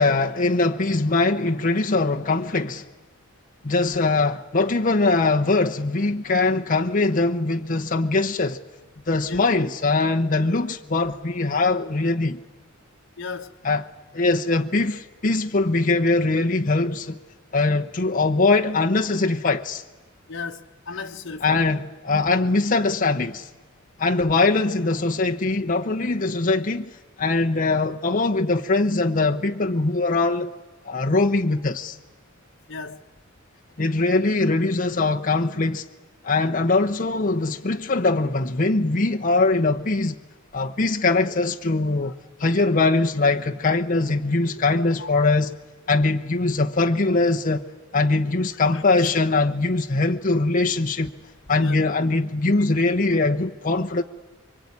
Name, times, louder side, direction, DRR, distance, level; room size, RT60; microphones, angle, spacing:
voice 1, 0.0-2.8 3.6-8.6 9.1-12.4 13.6-17.2 17.5-19.8 21.4-23.5 24.0-26.9 27.2-30.5 30.8-32.0 33.8-35.9 36.2-40.1 40.5-42.1 42.4-45.5 45.9-47.6 47.9-51.1 51.5-54.0, left 3 dB, 40° left, 0.9 m, -22 dB
voice 2, 13.2-13.5 20.3-21.6 32.7-33.0 41.3-41.4 42.0-42.2 44.4-45.3 48.7-49.1 51.6-51.8, left 4 dB, 60° left, 1.2 m, -36 dB
24.0 x 24.0 x 9.7 m
head